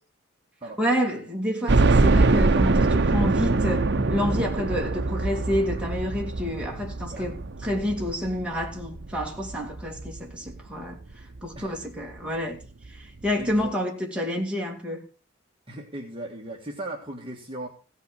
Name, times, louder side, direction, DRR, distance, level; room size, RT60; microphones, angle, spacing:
voice 1, 0.8-15.0, equal, 5° right, 2.3 m, -29 dB
sound 1, 1.7-10.6 11.1-11.2 11.5-11.6 12.8-12.9 13.2-13.3, right 3 dB, 55° right, 0.7 m, -23 dB
voice 2, 13.4-13.8 15.7-17.7, right 1 dB, 25° right, 1.6 m, -37 dB
16.0 x 5.7 x 6.9 m
head